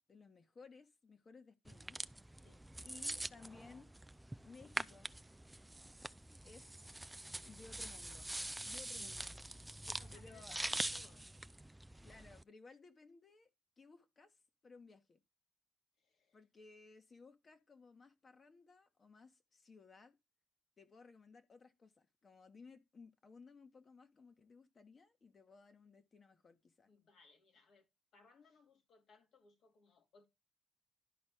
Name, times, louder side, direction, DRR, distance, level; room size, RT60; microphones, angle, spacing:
voice 1, 0.1-2.1 2.8-3.9 4.4-5.1 6.4-6.9 7.4-8.3 8.6-9.3 10.1-10.6 12.0-13.5 13.8-14.4 14.6-15.2 16.3-20.2 20.8-26.9, left 4 dB, 40° left, 1.5 m, -59 dB
sound 1, 1.7-12.4, right 1 dB, 10° right, 0.4 m, -45 dB
voice 2, 2.4-2.7 9.0-9.4 9.8-11.4 16.0-16.4 26.9-27.9 28.1-30.3, left 4 dB, 65° left, 2.3 m, -66 dB
12.0 x 4.4 x 3.6 m
cardioid pair, 90°, 0 cm